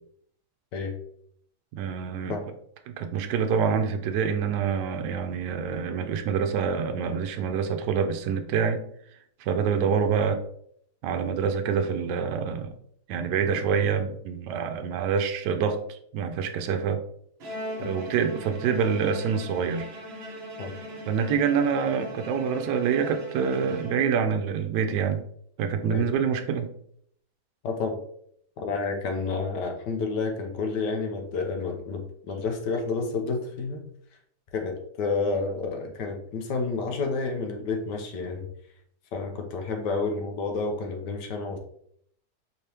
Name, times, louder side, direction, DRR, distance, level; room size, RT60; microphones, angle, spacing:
voice 1, 1.7-2.3 2.9-8.8 9.4-10.4 11.0-12.7 13.1-17.0 17.8-19.9 21.1-25.2 25.6-26.7, right 6 dB, 80° right, 6 dB, 1.2 m, -26 dB
Bowed string instrument, 17.4-24.4, equal, 55° right, 0.7 m, -40 dB
voice 2, 27.6-28.0 28.6-33.8 34.5-38.5 39.1-41.6, left 4 dB, 80° left, 3 dB, 1.4 m, -30 dB
5.1 x 2.9 x 3.3 m, 0.67 s
omnidirectional pair, 1.8 m